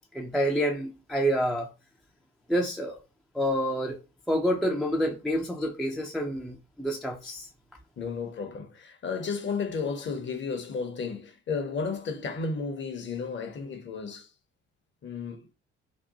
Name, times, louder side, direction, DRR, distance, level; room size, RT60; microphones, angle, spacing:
voice 1, 0.1-1.7 2.5-3.0 3.3-4.0 4.3-7.5, equal, ahead, 0.3 m, -28 dB
voice 2, 8.0-14.3 15.0-15.5, left 5 dB, 30° left, 0.7 m, -33 dB
2.8 x 2.2 x 2.6 m
figure-of-eight pair, 50°, 37 cm